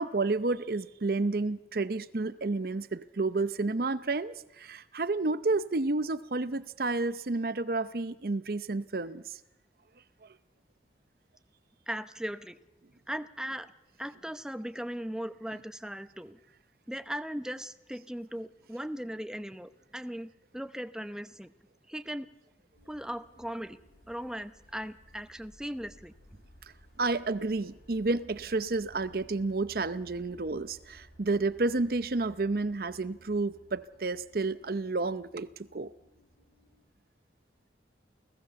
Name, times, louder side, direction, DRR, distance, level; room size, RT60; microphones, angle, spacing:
voice 1, 0.0-9.2 27.0-35.9, right 3 dB, 55° right, 0.7 m, -30 dB
voice 2, 11.9-12.6 13.1-13.7 14.0-16.4 16.9-21.5 21.9-22.3 22.9-23.8 24.1-26.1, equal, 5° right, 0.8 m, -38 dB
sound 1, 22.7-36.9, equal, 80° left, 6.2 m, -58 dB
29.0 x 17.5 x 6.9 m
head